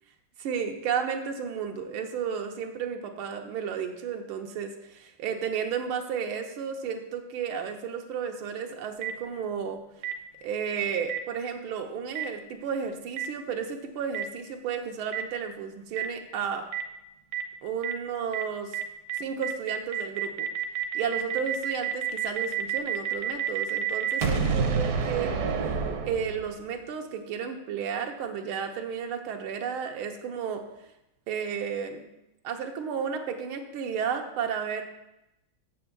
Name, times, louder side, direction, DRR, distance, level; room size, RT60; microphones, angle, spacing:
voice 1, 0.4-9.8 10.4-16.7 17.6-18.8 19.2-20.5 20.9-25.4 25.6-25.7 26.0-30.6 31.3-32.1 32.4-34.8, right 7 dB, 90° right, 4 dB, 1.8 m, -32 dB
Boom, 9.0-9.1 10.0-10.1 11.1-11.2 12.1-12.2 13.2-13.3 14.1-14.2 15.1-15.2 16.0-16.1 16.7-16.8 17.3-17.4 17.8-17.9 18.3-18.4 18.7-18.8 19.1-26.6, right 7 dB, 60° right, 1.0 m, -29 dB
7.0 x 4.9 x 6.7 m, 0.89 s
omnidirectional pair, 2.3 m